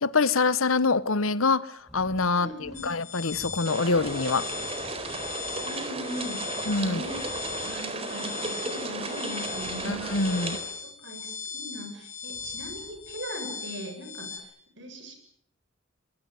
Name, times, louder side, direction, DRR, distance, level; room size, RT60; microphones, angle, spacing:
voice 1, 0.0-4.5 6.7-7.0 9.8-10.6, left 3 dB, 85° left, 1.1 m, -25 dB
sound 1, 1.8-2.3 2.6-3.0 3.3-5.7 6.1-8.0 9.4-10.8 12.2-13.3, equal, ahead, 2.2 m, -51 dB
voice 2, 2.4-2.9 5.6-6.4 6.8-7.2 7.6-10.4 10.8-14.5 14.8-15.1, equal, 60° right, 7.8 m, -39 dB
sound 2, 2.7-14.4, left 6 dB, 35° left, 4.7 m, -39 dB
sound 3, 3.7-10.6, right 2 dB, 30° right, 4.0 m, -34 dB
24.0 x 22.0 x 9.2 m
head